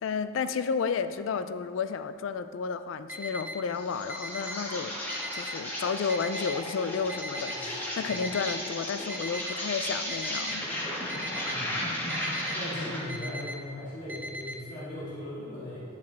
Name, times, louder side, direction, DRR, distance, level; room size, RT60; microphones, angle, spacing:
voice 1, 0.0-5.0 5.3-10.6, left 5 dB, 65° left, 11 dB, 0.3 m, -32 dB
Alarm, 3.1-3.5 4.1-4.5 5.1-5.5 6.1-6.5 7.1-7.5 8.1-8.5 9.1-9.5 10.1-10.5 11.1-11.5 12.1-12.6 13.1-13.5 14.1-14.5, equal, 10° right, 0.6 m, -38 dB
Insect, 3.7-13.1, left 1 dB, 10° left, 1.7 m, -35 dB
voice 2, 11.5-11.9 12.5-15.8, left 1 dB, 35° left, -8 dB, 2.2 m, -39 dB
10.5 x 8.8 x 3.4 m, 2.3 s
head